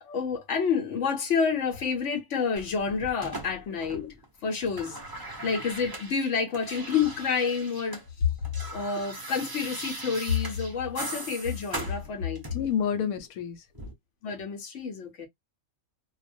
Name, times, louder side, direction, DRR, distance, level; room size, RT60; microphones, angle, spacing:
voice 1, 0.0-4.2 4.4-5.0 5.4-8.0 8.7-12.4 14.2-15.3, left 6 dB, 65° left, 1.0 m, -29 dB
sound 1, 2.6-4.3 4.5-8.1 8.3-12.8 13.7-13.9, right 2 dB, 35° right, 0.3 m, -40 dB
voice 2, 12.5-13.9, left 8 dB, 85° left, 1.1 m, -29 dB
2.3 x 2.2 x 2.4 m
omnidirectional pair, 1.5 m